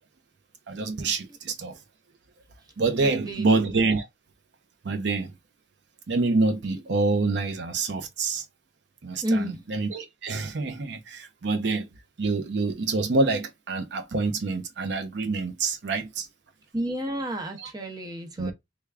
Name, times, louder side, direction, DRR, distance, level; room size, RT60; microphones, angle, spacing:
voice 1, 0.7-1.8 2.8-4.1 4.8-5.3 6.1-8.4 9.0-11.9 12.2-16.3 17.6-17.7 18.4-18.5, right 3 dB, 65° right, 0.6 m, -26 dB
voice 2, 3.0-3.5 9.2-9.7 16.7-18.5, equal, 20° right, 0.9 m, -30 dB
3.4 x 2.3 x 3.3 m
head